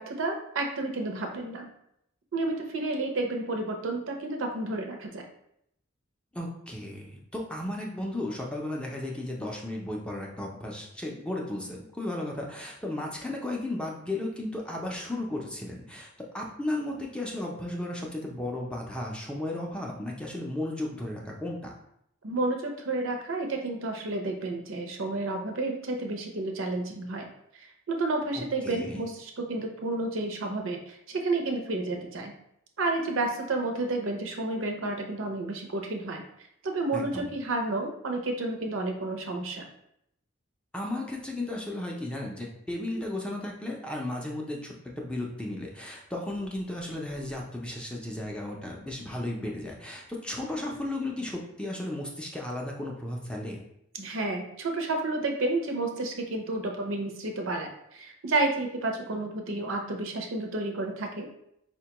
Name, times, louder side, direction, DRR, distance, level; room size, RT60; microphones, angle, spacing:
voice 1, 0.0-1.7 2.3-5.2 22.2-27.3 27.5-32.3 32.8-36.2 36.6-39.7 53.9-61.3, right 2 dB, 70° right, 3 dB, 0.6 m, -31 dB
voice 2, 6.3-21.7 28.3-29.0 36.9-37.3 40.7-53.6, left 1 dB, 5° left, -1 dB, 0.4 m, -34 dB
4.3 x 2.2 x 2.9 m, 0.74 s
head